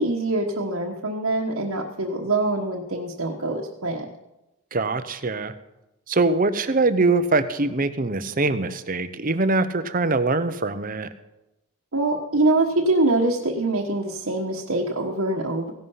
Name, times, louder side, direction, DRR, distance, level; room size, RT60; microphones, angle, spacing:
voice 1, 0.0-4.1 11.9-15.7, right 2 dB, 75° right, 0 dB, 1.3 m, -24 dB
voice 2, 4.7-5.5 6.1-11.1, right 3 dB, 40° right, 12 dB, 0.8 m, -23 dB
16.5 x 11.0 x 5.6 m, 0.95 s
head